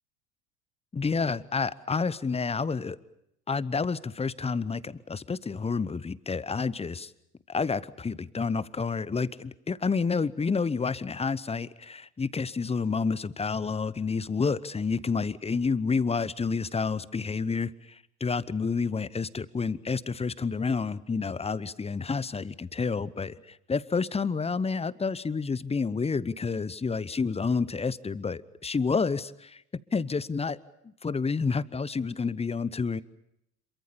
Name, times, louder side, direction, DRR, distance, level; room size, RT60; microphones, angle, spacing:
voice 1, 0.9-3.0 3.5-7.1 7.5-29.6 29.9-30.6 31.0-33.0, left 4 dB, 15° left, 18 dB, 0.9 m, -29 dB
27.0 x 23.5 x 7.0 m, 0.78 s
hypercardioid pair, 75°, 46 cm